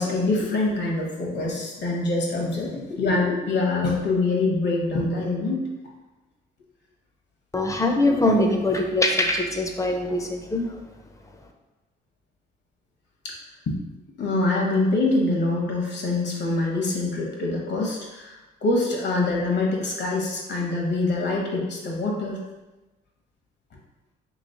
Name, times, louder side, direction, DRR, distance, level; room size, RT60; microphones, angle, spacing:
voice 1, 0.0-5.6 13.2-13.4 13.7-13.8 14.2-22.4, left 2 dB, 60° left, -1 dB, 1.1 m, -25 dB
voice 2, 7.5-10.8, left 1 dB, 15° left, 3 dB, 0.6 m, -22 dB
3.1 x 3.0 x 4.1 m, 1.1 s
cardioid pair, 90°, 20 cm